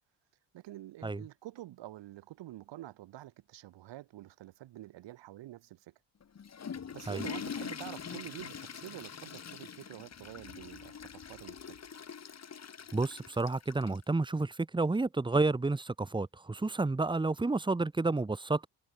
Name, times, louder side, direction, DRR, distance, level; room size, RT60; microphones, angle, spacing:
voice 1, 0.5-5.9 6.9-11.8, right 15 dB, 80° right, 3.4 m, -47 dB
Water / Toilet flush, 6.2-14.0, left 7 dB, 35° left, 4.1 m, -44 dB
voice 2, 12.9-18.7, right 3 dB, 10° right, 1.3 m, -30 dB
cardioid pair, 125°, 43 cm